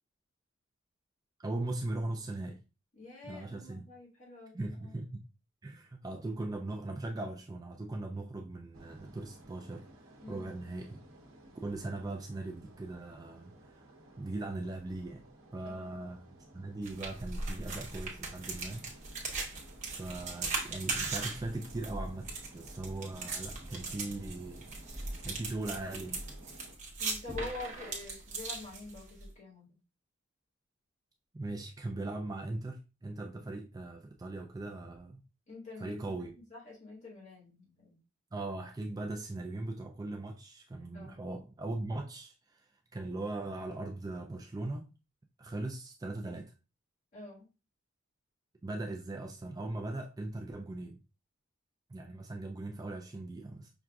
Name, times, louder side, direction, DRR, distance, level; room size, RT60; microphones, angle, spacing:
voice 1, 1.4-2.6 3.2-3.9 4.5-5.2 5.6-9.9 10.3-11.0 11.6-13.8 14.2-15.2 15.5-18.9 20.0-26.2 31.3-35.2 35.8-36.3 38.3-44.9 45.4-46.5 48.6-51.0 51.9-53.7, right 2 dB, 20° right, 0.3 m, -39 dB
voice 2, 3.0-4.6 4.8-4.9 10.2-10.5 15.6-16.0 27.0-29.7 35.5-36.2 36.5-38.0 40.9-41.2 47.1-47.5, left 2 dB, 35° left, 1.6 m, -46 dB
sound 1, 8.7-26.7, right 1 dB, 85° right, 0.8 m, -56 dB
sound 2, 16.8-29.3, right 3 dB, 35° right, 1.0 m, -39 dB
5.7 x 2.5 x 2.3 m
head